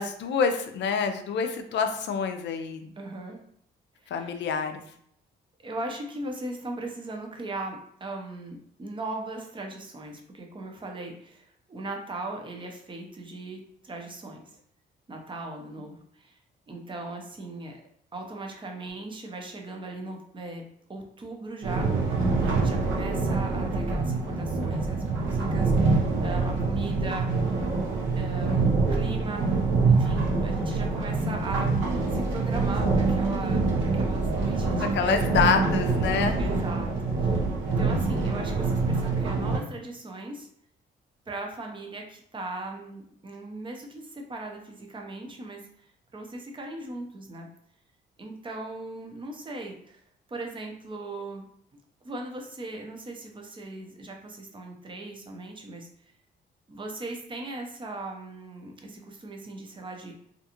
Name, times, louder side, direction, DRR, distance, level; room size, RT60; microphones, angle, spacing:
voice 1, 0.0-2.9 4.1-4.8 34.8-36.4, left 6 dB, 65° left, 7 dB, 0.4 m, -27 dB
voice 2, 3.0-3.4 4.0-4.3 5.6-14.6 15.1-16.4 16.7-17.8 18.1-20.6 20.9-27.6 28.2-29.5 29.9-35.6 36.4-36.9 37.2-40.5 41.3-47.5 48.2-50.0 50.3-51.5 52.0-55.9 56.7-60.2, right 2 dB, 25° right, 2 dB, 0.6 m, -39 dB
sound 1, 21.6-39.6, right 3 dB, 75° right, 0.7 m, -25 dB
2.5 x 2.3 x 2.8 m, 0.68 s
cardioid pair, 90°, 20 cm